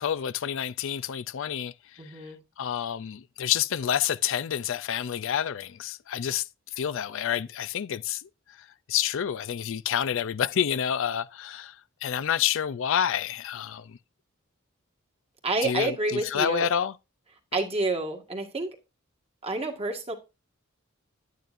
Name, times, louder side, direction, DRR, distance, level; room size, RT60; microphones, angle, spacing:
voice 1, 0.0-1.7 2.6-6.4 6.8-8.3 8.9-11.7 12.0-14.0 15.6-16.9, left 9 dB, 65° left, 0.4 m, -28 dB
voice 2, 2.0-2.4 15.4-16.7 17.5-18.7 19.4-20.1, right 2 dB, 30° right, 1.7 m, -29 dB
10.5 x 9.2 x 2.6 m
head